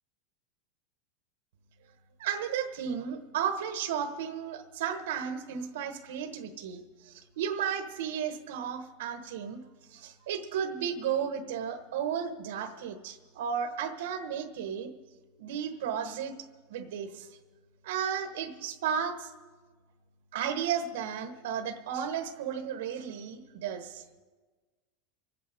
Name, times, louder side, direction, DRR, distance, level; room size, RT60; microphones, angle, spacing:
voice 1, 2.2-9.6 9.9-14.9 15.4-16.3 16.7-17.3 17.8-19.3 20.3-24.0, right 8 dB, 85° right, 6 dB, 1.2 m, -34 dB
26.0 x 8.8 x 5.1 m, 1.4 s
supercardioid pair, 160°, 0 cm